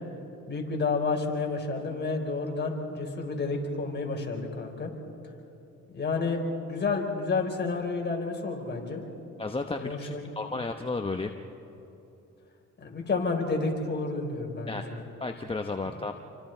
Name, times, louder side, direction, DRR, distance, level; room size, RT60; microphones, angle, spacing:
voice 1, 0.5-4.9 5.9-9.0 9.8-10.3 12.8-15.0, left 3 dB, 35° left, 1 dB, 4.3 m, -30 dB
voice 2, 9.4-11.3 14.7-14.8 15.2-16.1, left 3 dB, 20° left, 5 dB, 1.0 m, -33 dB
29.0 x 25.0 x 4.5 m, 3.0 s
cardioid pair, 90°, 30 cm